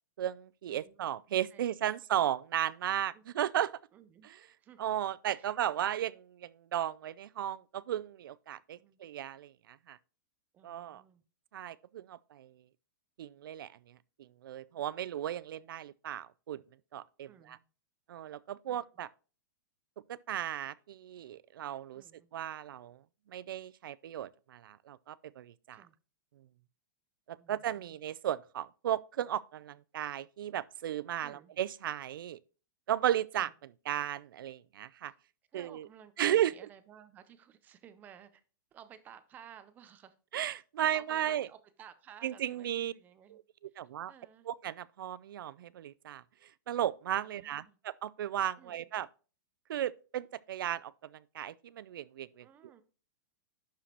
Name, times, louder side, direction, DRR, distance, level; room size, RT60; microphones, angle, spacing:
voice 1, 0.2-3.7 4.8-10.0 10.6-11.0 11.5-12.5 13.2-16.6 16.9-17.6 18.1-19.1 20.1-22.0 22.3-23.0 23.3-25.8 27.3-32.4 32.9-33.5 33.9-35.1 35.5-35.9 36.2-36.5 40.3-41.5 42.2-42.9 43.3-44.1 44.5-49.1 49.7-52.5, right 11 dB, 85° right, 0.4 m, -35 dB
voice 2, 0.7-1.0 1.5-2.3 3.1-3.2 3.9-4.3 4.6-5.0 5.3-5.5 8.7-9.0 10.5-11.2 17.2-17.7 18.7-18.9 21.9-22.3 25.7-25.9 27.3-28.0 31.2-31.5 33.4-33.5 35.0-35.2 35.5-38.4 38.7-40.1 40.8-43.4 43.7-43.8 44.1-44.5 47.2-47.8 48.6-48.9 52.4-52.8, right 9 dB, 15° right, 0.5 m, -56 dB
11.0 x 5.0 x 2.9 m
supercardioid pair, 170°, 11 cm